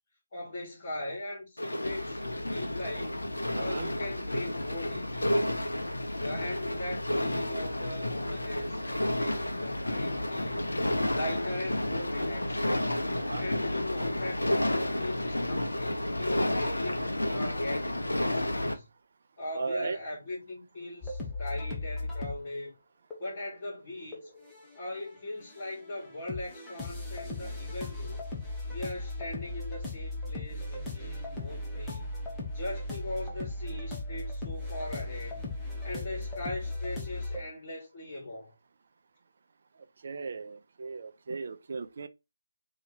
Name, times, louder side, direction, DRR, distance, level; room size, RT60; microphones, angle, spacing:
voice 1, 0.3-3.2 3.6-5.4 6.1-12.6 13.4-18.9 19.4-22.7 23.2-24.3 24.8-28.2 28.7-32.1 32.5-38.5, left 1 dB, 35° left, 2.5 m, -40 dB
sound 1, 1.6-18.7, left 1 dB, 80° left, 0.9 m, -31 dB
voice 2, 3.5-3.9 13.2-13.5 19.5-20.0 40.0-42.1, right 4 dB, 45° right, 0.6 m, -36 dB
sound 2, 21.0-22.4 23.1-23.4 24.1-25.1 25.4-37.4, left 2 dB, 5° left, 1.1 m, -37 dB
4.1 x 3.1 x 4.0 m
figure-of-eight pair, 155°, 0 cm